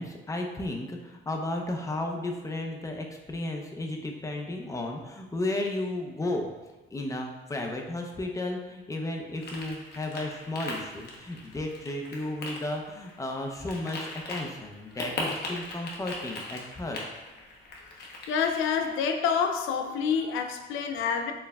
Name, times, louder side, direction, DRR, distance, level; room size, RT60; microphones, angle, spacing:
voice 1, 0.0-6.5 6.9-17.1, left 2 dB, 15° left, 2 dB, 0.5 m, -33 dB
sound 1, 9.3-19.1, left 2 dB, 55° left, 0.9 m, -40 dB
voice 2, 18.3-21.3, left 6 dB, 90° left, 6 dB, 0.4 m, -27 dB
4.4 x 3.2 x 2.2 m, 1.2 s
cardioid pair, 90°, 20 cm